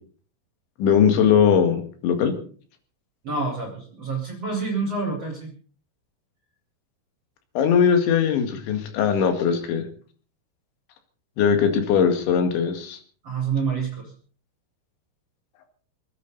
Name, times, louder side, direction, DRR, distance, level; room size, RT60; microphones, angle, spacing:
voice 1, 0.8-2.3 7.6-9.9 11.4-13.0, left 7 dB, 75° left, 6 dB, 4.3 m, -20 dB
voice 2, 3.2-5.5 13.2-14.1, right 4 dB, 35° right, -1 dB, 4.8 m, -27 dB
27.5 x 10.0 x 4.0 m, 0.43 s
omnidirectional pair, 5.4 m